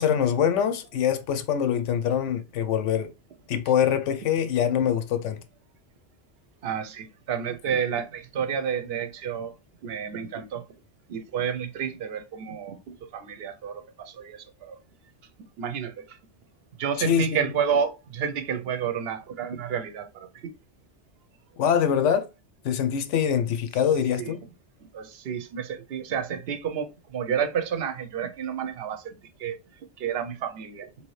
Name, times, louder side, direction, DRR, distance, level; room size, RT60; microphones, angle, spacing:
voice 1, 0.0-3.1 3.5-5.4 17.0-17.5 21.6-22.3 22.6-24.4, left 8 dB, 90° left, 0.9 m, -24 dB
voice 2, 6.6-9.5 9.8-10.7 11.1-14.8 15.6-16.2 16.8-20.5 24.2-24.3 24.9-30.9, right 7 dB, 65° right, 0.8 m, -30 dB
3.2 x 2.7 x 3.1 m
omnidirectional pair, 1.2 m